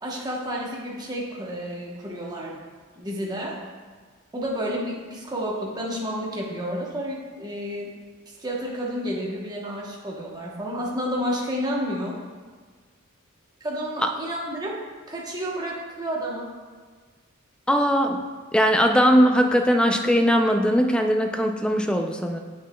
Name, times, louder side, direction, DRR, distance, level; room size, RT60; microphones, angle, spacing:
voice 1, 0.0-2.6 3.0-3.6 4.3-7.9 8.4-12.1 13.6-14.7 15.1-16.5, equal, 20° right, -3 dB, 0.9 m, -30 dB
voice 2, 17.7-18.2 18.5-22.4, equal, 5° left, 4 dB, 0.3 m, -20 dB
8.0 x 6.1 x 2.2 m, 1.5 s
head